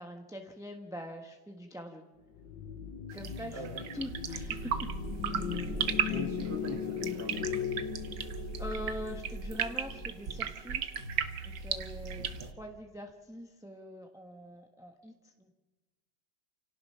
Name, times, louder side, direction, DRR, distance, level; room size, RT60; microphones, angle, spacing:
voice 1, 0.0-2.0 3.1-4.9 8.3-10.8 11.4-15.5, equal, ahead, 3 dB, 1.0 m, -44 dB
sound 1, 2.3-10.7, left 8 dB, 70° left, 1.9 m, -38 dB
sound 2, 3.1-12.5, right 9 dB, 65° right, 1.5 m, -36 dB
sound 3, 4.1-12.3, right 2 dB, 90° right, 4.5 m, -43 dB
voice 2, 6.1-7.5 12.2-12.5, right 1 dB, 30° right, -1 dB, 2.2 m, -41 dB
29.0 x 17.5 x 5.7 m, 1.2 s
omnidirectional pair, 2.1 m